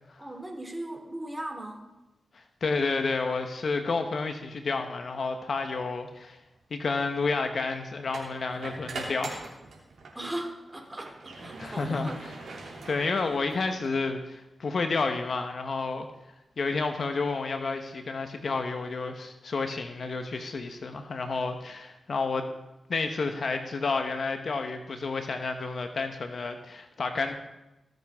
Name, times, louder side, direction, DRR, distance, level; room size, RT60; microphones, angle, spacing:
voice 1, 0.2-1.9 10.1-12.2, right 1 dB, 15° right, 3 dB, 2.8 m, -38 dB
voice 2, 2.6-6.4 6.7-9.5 11.6-12.1 12.8-16.1 16.6-22.5 22.9-27.3, left 4 dB, 65° left, 6 dB, 1.1 m, -30 dB
sound 1, 6.0-6.2 8.0-10.2 10.6-13.9, right 3 dB, 80° right, 3.0 m, -42 dB
18.5 x 7.9 x 3.7 m, 0.98 s
cardioid pair, 50°, 0 cm